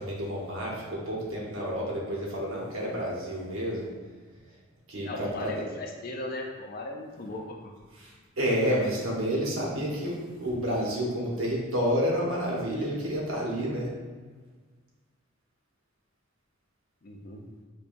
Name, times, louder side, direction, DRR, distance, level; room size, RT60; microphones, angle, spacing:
voice 1, 0.0-3.9 4.9-5.6 7.9-8.1 8.4-13.9, equal, 80° right, -4 dB, 1.0 m, -29 dB
voice 2, 5.0-7.6 17.0-17.4, left 2 dB, 45° left, 2 dB, 0.4 m, -37 dB
5.2 x 2.2 x 2.5 m, 1.4 s
head